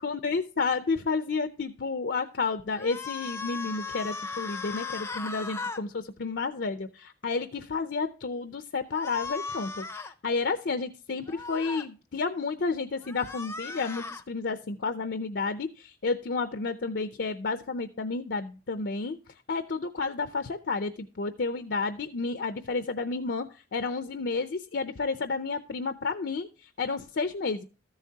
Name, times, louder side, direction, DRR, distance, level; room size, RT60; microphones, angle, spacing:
voice 1, 0.0-19.2 19.5-27.6, left 4 dB, 60° left, 9 dB, 0.5 m, -31 dB
sound 1, 2.7-5.8 8.9-10.1 11.3-11.9 13.0-14.2, left 4 dB, 15° left, 0.5 m, -37 dB
13.5 x 7.2 x 2.8 m, 0.35 s
head